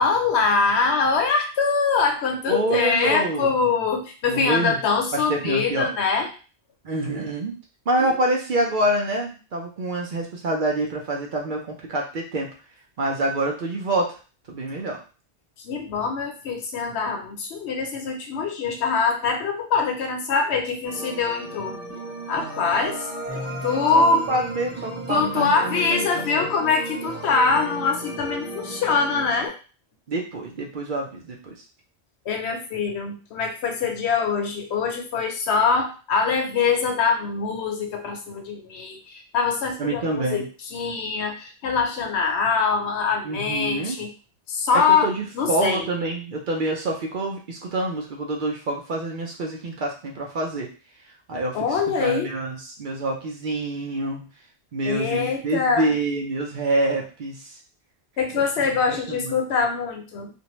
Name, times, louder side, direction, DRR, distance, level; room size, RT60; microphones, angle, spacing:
voice 1, 0.0-6.3 8.0-8.1 15.6-21.8 22.3-23.0 23.6-24.3 25.1-29.5 32.3-40.4 40.7-44.1 44.5-45.1 45.3-45.8 51.5-52.3 54.8-55.9 58.2-60.3, left 5 dB, 80° left, 3 dB, 0.9 m, -23 dB
voice 2, 2.5-3.5 4.3-4.8 5.1-5.9 6.8-7.6 7.9-12.5 13.0-14.2 14.5-15.0 22.8-22.9 23.9-26.1 26.3-26.5 30.1-31.5 39.8-40.5 43.2-44.0 44.7-50.7 51.3-54.3 54.7-57.6 58.3-59.4, right 2 dB, 55° right, 0 dB, 0.7 m, -27 dB
sound 1, 20.8-29.5, right 2 dB, 10° right, 1.1 m, -34 dB
2.6 x 2.1 x 3.0 m, 0.34 s
omnidirectional pair, 1.1 m